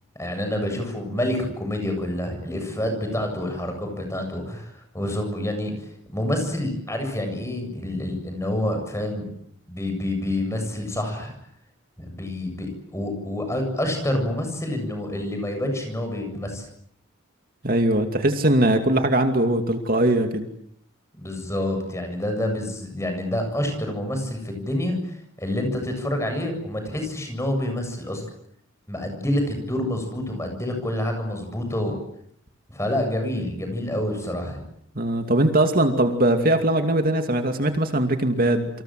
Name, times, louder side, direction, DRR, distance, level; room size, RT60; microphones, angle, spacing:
voice 1, 0.2-5.7 6.1-9.3 9.7-11.4 12.1-16.6 21.1-28.2 28.9-32.0 32.7-34.6, left 1 dB, 15° left, 5 dB, 7.8 m, -27 dB
voice 2, 17.6-20.5 35.0-38.7, right 1 dB, 45° right, 5 dB, 2.6 m, -21 dB
29.0 x 26.5 x 7.8 m, 0.70 s
head